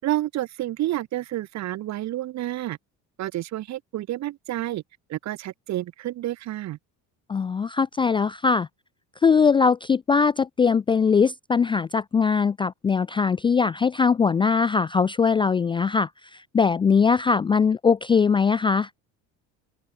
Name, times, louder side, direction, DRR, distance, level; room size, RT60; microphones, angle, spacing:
voice 1, 0.0-2.8 3.2-4.8 5.1-6.8, right 14 dB, 55° right, 6.5 m, -29 dB
voice 2, 7.3-8.7 9.2-18.9, left 5 dB, 15° left, 0.4 m, -21 dB
open air
cardioid pair, 155°, 32 cm